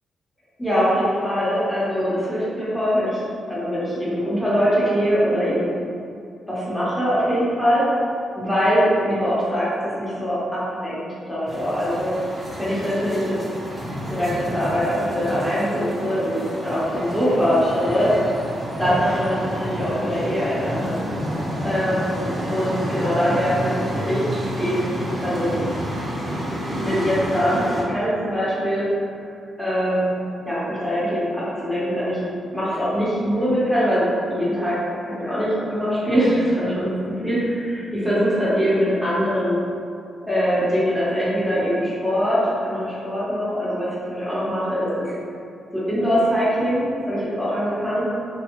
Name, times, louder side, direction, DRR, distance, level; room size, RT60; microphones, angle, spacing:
voice 1, 0.6-5.7 6.5-9.7 10.0-12.1 12.6-13.4 14.1-18.1 18.8-21.3 21.6-25.6 26.7-28.9 29.6-30.2 30.4-32.2 32.5-34.8 35.0-39.6 40.2-45.1 45.7-48.3, equal, 5° left, -10 dB, 1.0 m, -23 dB
sound 1, 11.5-27.8, equal, 15° right, 0.7 m, -30 dB
3.4 x 2.3 x 3.0 m, 2.4 s
wide cardioid pair, 150°, 0 cm